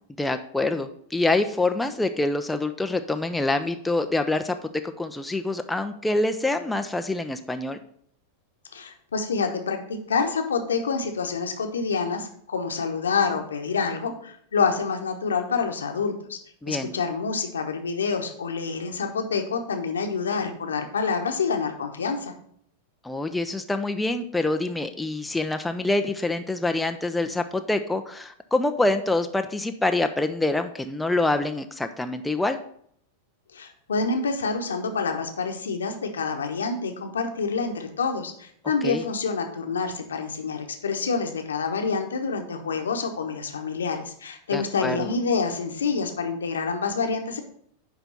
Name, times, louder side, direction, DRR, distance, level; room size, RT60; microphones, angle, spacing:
voice 1, 0.2-4.6 5.0-7.8 16.6-16.9 23.0-32.6 38.8-39.0 44.5-45.1, left 2 dB, 5° left, 6 dB, 0.5 m, -26 dB
voice 2, 8.7-16.4 16.7-22.3 33.5-47.4, left 5 dB, 70° left, 5 dB, 1.0 m, -27 dB
9.9 x 3.4 x 5.3 m, 0.65 s
figure-of-eight pair, 90°, 0 cm